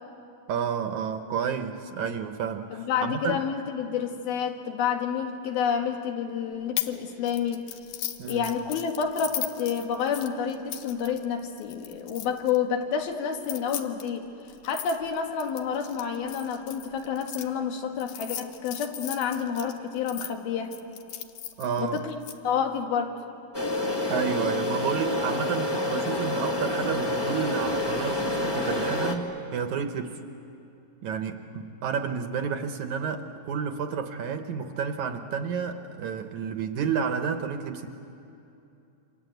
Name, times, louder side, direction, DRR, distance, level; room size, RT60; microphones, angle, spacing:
voice 1, 0.5-3.4 8.2-8.5 21.6-22.0 24.1-30.2 31.0-37.9, right 6 dB, 65° right, 6 dB, 2.1 m, -30 dB
voice 2, 2.7-7.7 8.3-14.3 14.6-20.7 21.8-22.2 22.4-23.1, left 7 dB, 90° left, 3 dB, 3.7 m, -29 dB
sound 1, 6.8-7.0 7.3-12.6 13.3-17.4 18.0-20.3 20.7-22.3, left 12 dB, 70° left, 2.4 m, -37 dB
sound 2, 23.5-29.1, left 1 dB, 25° left, 0.5 m, -28 dB
28.0 x 26.0 x 8.0 m, 2.7 s
omnidirectional pair, 4.2 m